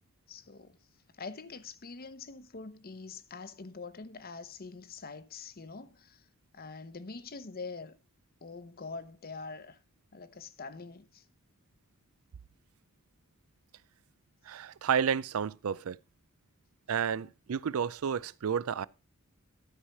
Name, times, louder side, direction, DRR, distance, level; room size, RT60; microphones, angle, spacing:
voice 1, 0.3-0.8 1.2-6.2 6.5-8.0 8.4-9.8 10.1-11.2, left 4 dB, 45° left, 0.9 m, -44 dB
voice 2, 14.5-16.0 16.9-18.9, right 7 dB, 75° right, 0.4 m, -31 dB
13.0 x 4.8 x 5.8 m
head